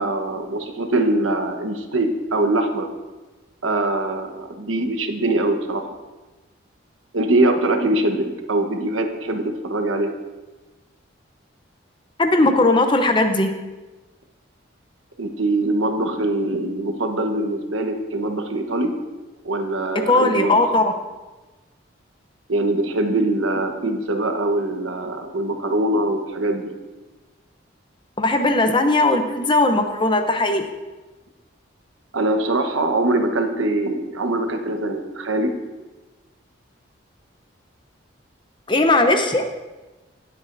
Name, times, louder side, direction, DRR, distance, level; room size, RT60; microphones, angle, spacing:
voice 1, 0.0-2.9 3.6-5.9 7.1-10.2 15.2-19.0 19.4-20.7 22.5-26.7 32.1-35.5, right 2 dB, 85° right, 5 dB, 1.2 m, -23 dB
voice 2, 12.2-13.5 20.1-20.9 28.2-30.7 38.7-39.5, left 2 dB, 25° left, 6 dB, 0.7 m, -18 dB
19.0 x 8.2 x 2.6 m, 1.2 s
head